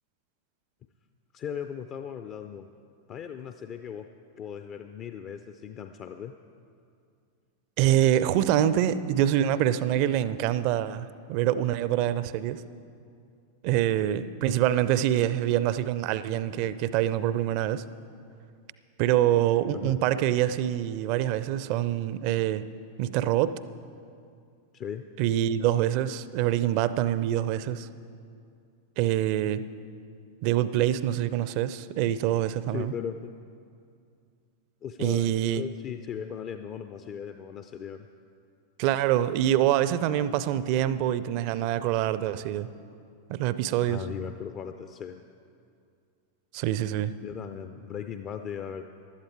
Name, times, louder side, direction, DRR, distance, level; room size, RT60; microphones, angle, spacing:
voice 1, 1.3-2.7 3.1-4.1 4.4-6.3 14.0-14.2 19.7-20.0 24.7-25.0 32.7-33.3 34.8-35.3 35.5-38.1 43.8-45.2 47.2-48.8, left 8 dB, 35° left, 8 dB, 0.5 m, -37 dB
voice 2, 7.8-12.6 13.6-17.8 19.0-22.7 23.0-23.6 25.2-27.9 29.0-29.7 30.4-32.9 35.0-35.6 38.8-42.7 43.3-44.0 46.5-47.2, right 12 dB, 45° right, 15 dB, 0.4 m, -25 dB
16.0 x 11.5 x 4.5 m, 2.4 s
figure-of-eight pair, 90°, 0 cm